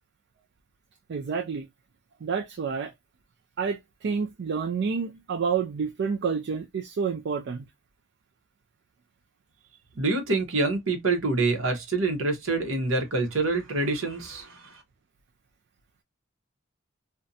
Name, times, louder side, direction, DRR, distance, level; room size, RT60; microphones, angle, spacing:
voice 1, 1.1-1.7 2.2-2.9 3.6-7.7, right 6 dB, 60° right, 0.4 m, -29 dB
voice 2, 10.0-14.6, right 3 dB, 75° right, 0.9 m, -26 dB
2.6 x 2.2 x 2.6 m
head